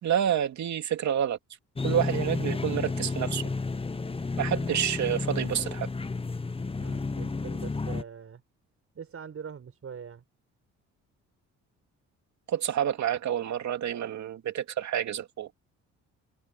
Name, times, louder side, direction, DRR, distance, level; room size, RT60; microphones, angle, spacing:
voice 1, 0.0-1.4 1.8-3.4 4.4-5.9 12.5-15.5, right 10 dB, 65° right, 2.5 m, -28 dB
sound 1, 1.8-8.0, left 3 dB, 20° left, 1.1 m, -31 dB
voice 2, 6.8-8.4 8.9-10.2, right 7 dB, 50° right, 7.0 m, -42 dB
open air
cardioid pair, 90°, 30 cm